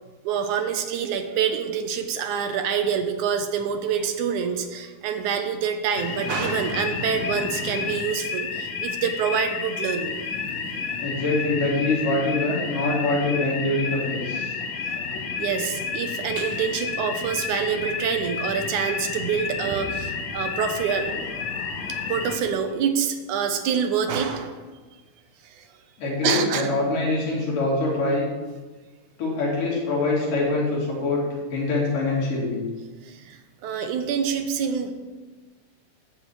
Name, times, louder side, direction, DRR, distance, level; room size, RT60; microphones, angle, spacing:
voice 1, 0.2-10.2 15.4-21.1 22.1-24.6 25.4-25.7 26.2-26.7 33.0-34.9, right 7 dB, 75° right, 6 dB, 2.3 m, -26 dB
sound 1, 6.0-22.4, left 5 dB, 65° left, 1.2 m, -31 dB
voice 2, 11.0-14.5 26.0-28.3 29.2-31.2 31.5-32.6, left 2 dB, 90° left, -5 dB, 4.9 m, -24 dB
12.0 x 5.0 x 8.7 m, 1.3 s
omnidirectional pair, 3.7 m